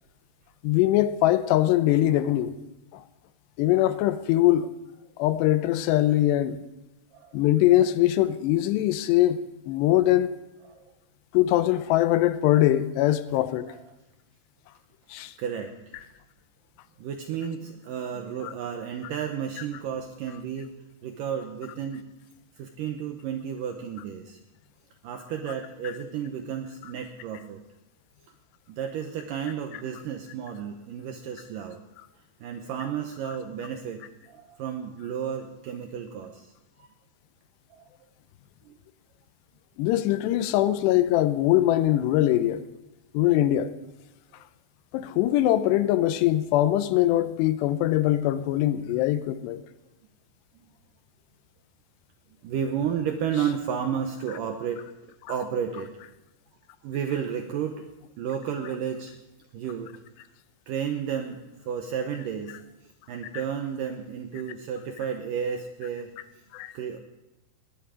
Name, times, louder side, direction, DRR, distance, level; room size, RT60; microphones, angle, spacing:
voice 1, 0.6-2.6 3.6-4.7 5.2-6.6 7.3-9.4 9.7-10.3 11.3-13.7 15.1-15.3 39.8-42.6 43.1-43.7 44.9-49.6 66.5-66.7, left 14 dB, 85° left, 2.8 m, -22 dB
voice 2, 7.1-7.5 10.6-10.9 13.7-13.8 15.4-16.1 17.0-20.7 21.0-22.0 22.6-24.4 25.0-27.6 28.7-31.8 32.4-36.5 36.8-36.9 37.7-37.9 38.6-38.8 49.4-49.5 50.5-50.7 52.4-54.8 55.3-55.9 56.8-57.8 58.2-59.1 59.5-59.9 60.7-61.4 61.7-66.1 66.7-67.0, right 8 dB, 80° right, 2.0 m, -32 dB
19.0 x 10.5 x 5.0 m
omnidirectional pair, 4.8 m